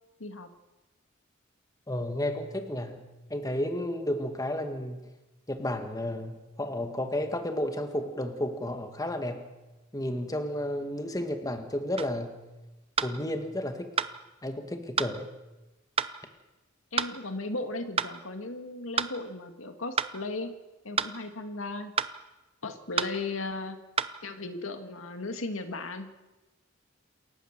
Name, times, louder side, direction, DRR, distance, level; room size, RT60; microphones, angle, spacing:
voice 1, 1.9-5.1 5.5-9.5 9.9-12.4 13.0-13.9 14.4-15.3, left 1 dB, 20° left, 6 dB, 1.9 m, -32 dB
sound 1, 12.0-12.1 13.0-13.1 14.0-14.1 15.0-15.1 16.0-16.1 17.0-17.1 18.0-18.1 19.0-19.1 20.0-20.1 21.0-21.1 22.0-22.1 23.0-23.1 24.0-24.1, right 6 dB, 30° right, 0.8 m, -28 dB
voice 2, 16.9-20.5 20.8-21.9 22.6-23.8 24.2-26.1, left 2 dB, 80° left, 7 dB, 2.1 m, -36 dB
28.0 x 15.0 x 7.4 m, 1.1 s
head